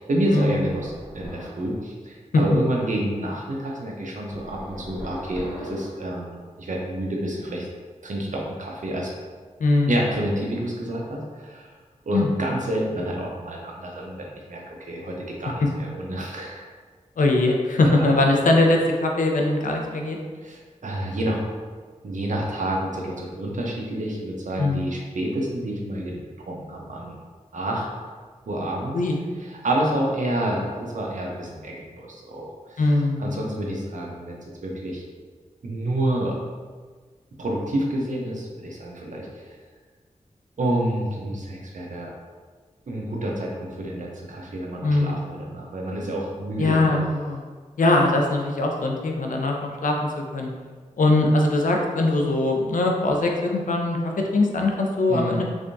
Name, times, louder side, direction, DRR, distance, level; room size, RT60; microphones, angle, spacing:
voice 1, 0.0-7.7 8.0-9.1 9.9-11.7 12.1-16.6 17.8-18.1 20.4-21.5 22.0-27.2 27.5-27.9 28.5-28.9 29.4-32.8 33.2-34.4 34.6-35.0 35.6-36.4 37.4-39.5 40.6-42.1 42.9-47.0 55.1-55.4, right 1 dB, 70° right, -2 dB, 0.7 m, -28 dB
sound 1, 0.7-1.7 4.3-6.1, equal, 5° right, 1.4 m, -39 dB
voice 2, 9.6-9.9 12.1-12.3 17.2-20.2 24.6-24.9 28.9-29.2 32.8-33.3 44.8-45.2 46.6-47.4 47.8-50.5 51.0-55.4, left 2 dB, 85° left, 1 dB, 0.5 m, -21 dB
3.5 x 3.4 x 2.6 m, 1.5 s
wide cardioid pair, 75°, 13 cm